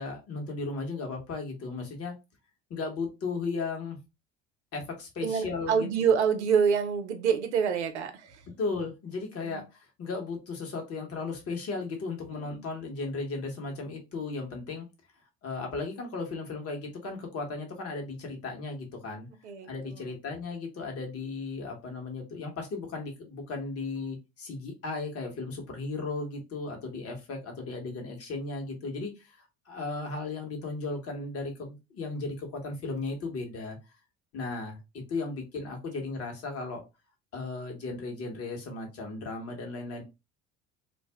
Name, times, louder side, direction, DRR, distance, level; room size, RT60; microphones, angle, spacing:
voice 1, 0.0-2.1 2.7-4.0 4.7-5.9 8.6-14.9 15.4-19.3 19.6-33.8 34.3-36.8 37.3-40.0, left 3 dB, 45° left, 1.2 m, -36 dB
voice 2, 5.2-8.4 9.4-9.6 12.3-12.6 19.4-20.1, right 6 dB, 90° right, 0.5 m, -27 dB
2.5 x 2.1 x 3.3 m
hypercardioid pair, 65°, 33 cm